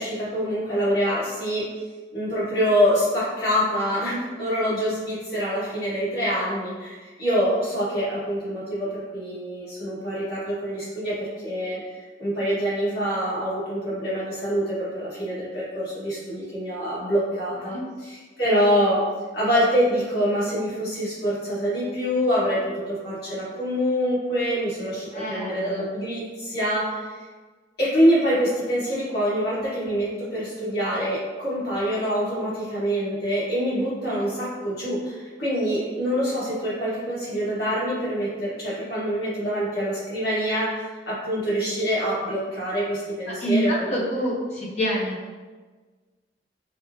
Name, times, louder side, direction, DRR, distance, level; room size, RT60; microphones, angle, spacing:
voice 1, 0.0-1.6 2.1-11.8 12.2-19.0 19.3-27.0 27.8-40.7 41.0-44.0, equal, 60° left, -9 dB, 1.4 m, -25 dB
voice 2, 25.1-25.8 34.1-34.2 43.3-45.3, equal, 35° left, -6 dB, 0.7 m, -27 dB
3.5 x 2.0 x 2.6 m, 1.4 s
head